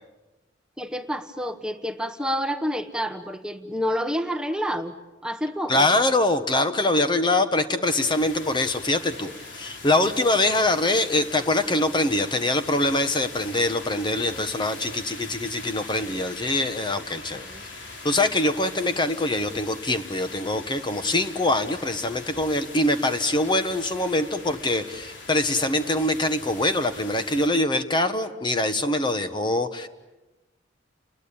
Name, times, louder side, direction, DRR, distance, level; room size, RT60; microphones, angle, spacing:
voice 1, 0.8-4.9 5.2-5.9 17.4-17.7, equal, 5° right, 7 dB, 1.2 m, -28 dB
voice 2, 5.7-17.5 18.0-29.9, left 2 dB, 25° left, 9 dB, 1.2 m, -24 dB
sound 1, 7.8-27.5, left 3 dB, 70° left, 4.0 m, -41 dB
29.5 x 21.5 x 8.5 m, 1.1 s
head